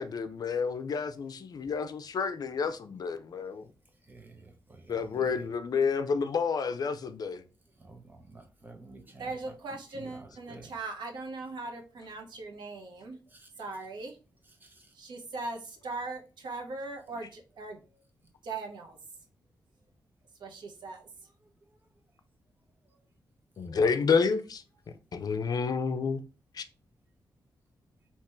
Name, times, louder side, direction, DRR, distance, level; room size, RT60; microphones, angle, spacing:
voice 1, 0.0-3.7 4.9-7.4 23.6-24.6 25.1-26.2 26.5-26.6, left 5 dB, 60° left, 0.6 m, -29 dB
voice 2, 4.1-5.4 7.8-10.7 13.3-13.5 14.6-14.9, right 3 dB, 25° right, 1.1 m, -51 dB
voice 3, 9.2-13.2 13.6-14.2 14.9-17.8 18.4-19.0 20.4-21.1, right 3 dB, 85° right, 1.0 m, -39 dB
3.6 x 3.0 x 4.4 m
wide cardioid pair, 105°, 8 cm